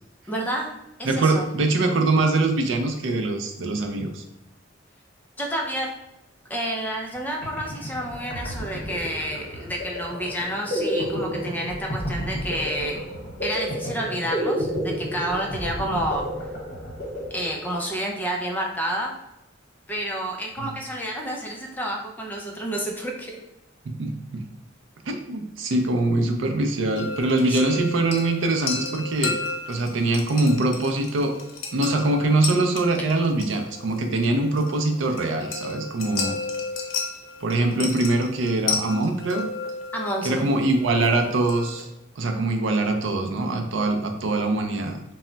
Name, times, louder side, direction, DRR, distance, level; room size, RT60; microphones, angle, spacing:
voice 1, 0.3-0.7 1.0-1.5 5.4-5.9 6.5-13.0 13.4-16.3 17.3-19.1 19.9-23.4 27.5-27.9 39.9-40.5, right 1 dB, 10° left, 0 dB, 0.4 m, -29 dB
voice 2, 1.0-4.2 20.6-20.7 23.9-24.4 25.1-29.4 29.7-31.3 31.7-36.4 37.4-39.5 40.2-41.9 42.2-45.0, right 2 dB, 70° right, 4 dB, 0.4 m, -23 dB
sound 1, 7.1-7.2 7.4-18.0, equal, 55° left, 1.0 m, -31 dB
sound 2, 27.0-41.8, left 4 dB, 85° left, 0.6 m, -33 dB
2.2 x 2.0 x 3.7 m, 0.91 s
head